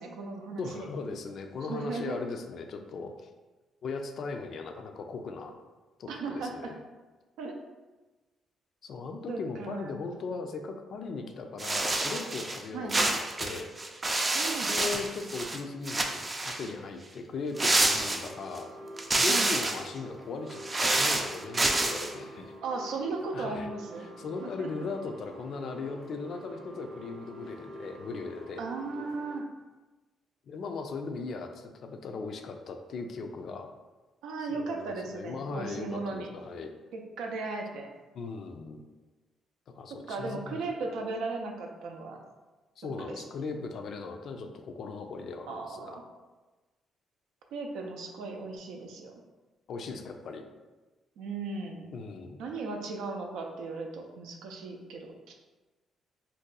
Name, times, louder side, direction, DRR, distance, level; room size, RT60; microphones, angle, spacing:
voice 1, 0.0-0.9 1.7-2.2 6.1-6.7 7.4-7.6 9.3-9.9 12.7-13.1 14.3-14.8 19.3-19.5 22.6-24.1 24.4-24.7 28.6-29.5 34.2-36.3 36.9-37.9 40.1-42.2 43.1-43.2 45.5-46.0 47.5-49.2 51.2-51.9 52.4-55.3, right 3 dB, 90° right, 2 dB, 0.4 m, -36 dB
voice 2, 0.6-3.3 3.8-5.6 6.0-6.8 8.8-13.7 14.6-18.7 19.1-22.5 23.3-23.7 24.0-28.6 30.5-33.7 34.4-36.7 38.1-38.8 39.7-40.7 42.8-46.0 49.7-50.4 51.9-52.4, left 4 dB, 65° left, 5 dB, 0.3 m, -38 dB
sound 1, 11.6-12.6 12.9-15.6 15.9-16.7 17.6-18.6 19.0-19.9 20.5-22.1, right 2 dB, 25° right, 0.4 m, -28 dB
sound 2, 17.5-29.4, equal, 45° right, 0.7 m, -46 dB
2.6 x 2.2 x 3.8 m, 1.2 s
cardioid pair, 90°, 0 cm